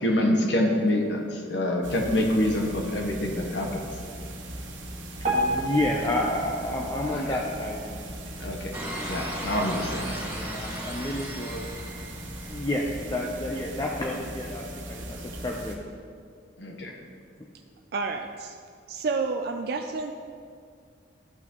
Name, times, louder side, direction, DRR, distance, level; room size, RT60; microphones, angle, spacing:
voice 1, 0.0-3.8 7.1-7.4 8.4-8.7 9.1-10.2 16.6-16.9, left 1 dB, 65° left, 1 dB, 1.0 m, -26 dB
sound 1, 1.8-15.8, right 1 dB, 90° right, 1.2 m, -39 dB
Piano, 5.2-8.3 8.9-9.0 9.3-9.4 10.1-10.2 10.8-10.9, right 1 dB, 35° right, 1.5 m, -31 dB
voice 2, 5.3-8.0 10.3-11.7 12.4-15.8, left 1 dB, 20° left, -1 dB, 0.6 m, -30 dB
sound 2, 8.7-12.8, equal, 15° right, 1.6 m, -37 dB
voice 3, 17.9-18.6 18.9-20.1, right 4 dB, 55° right, 5 dB, 0.3 m, -29 dB
12.5 x 6.1 x 3.0 m, 2.2 s
head